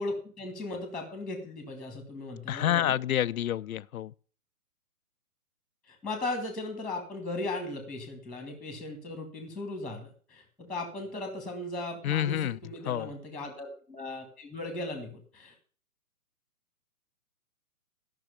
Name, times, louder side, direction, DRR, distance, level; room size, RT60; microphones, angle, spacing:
voice 1, 0.0-3.0 5.9-12.4 12.6-15.5, left 2 dB, ahead, 1.9 m, -37 dB
voice 2, 2.5-4.1 12.0-12.6 12.9-13.1, left 11 dB, 65° left, 0.6 m, -28 dB
12.0 x 6.2 x 6.9 m
figure-of-eight pair, 135°, 45 cm